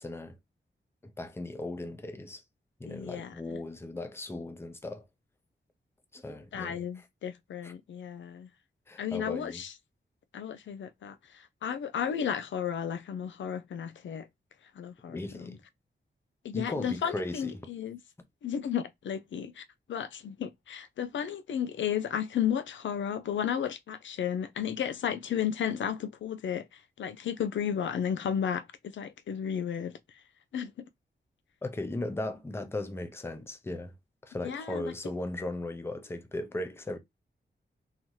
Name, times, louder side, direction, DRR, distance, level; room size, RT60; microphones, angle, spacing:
voice 1, 0.0-0.4 1.0-2.4 2.8-5.1 6.1-7.0 7.6-7.7 8.9-9.6 15.1-15.6 16.5-17.7 31.6-34.0 34.2-37.0, left 2 dB, 15° left, 0.5 m, -37 dB
voice 2, 2.9-3.6 6.5-8.5 9.0-9.7 10.3-14.3 14.8-15.6 16.4-18.0 18.4-28.6 28.9-30.2 30.5-30.7 34.4-34.8, left 8 dB, 85° left, 0.4 m, -33 dB
3.9 x 2.7 x 3.0 m
wide cardioid pair, 170°, 19 cm